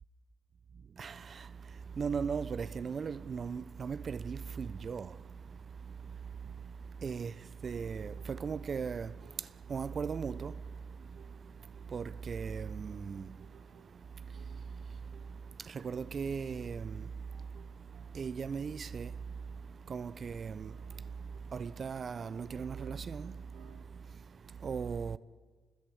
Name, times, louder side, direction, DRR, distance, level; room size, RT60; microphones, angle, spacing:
voice 1, 0.7-25.2, right 6 dB, 50° right, 0.9 m, -39 dB
sound 1, 7.6-23.8, right 7 dB, 70° right, 3.3 m, -61 dB
29.5 x 20.5 x 8.6 m
hypercardioid pair, 50°, 0 cm